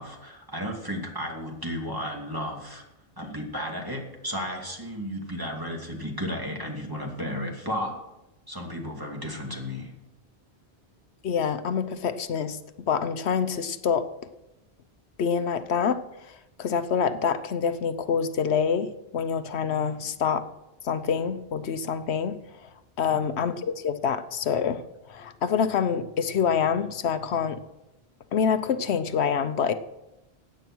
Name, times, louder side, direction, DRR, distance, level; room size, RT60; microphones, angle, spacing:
voice 1, 0.0-2.8 3.2-7.9 8.5-9.9 23.0-23.2, equal, 20° right, 0 dB, 2.5 m, -33 dB
voice 2, 11.2-12.6 12.9-14.1 15.2-16.0 16.6-20.4 20.8-22.4 23.0-24.8 25.1-27.6 28.3-29.7, left 7 dB, 80° left, 11 dB, 1.0 m, -26 dB
16.0 x 9.2 x 6.2 m, 0.94 s
omnidirectional pair, 1.1 m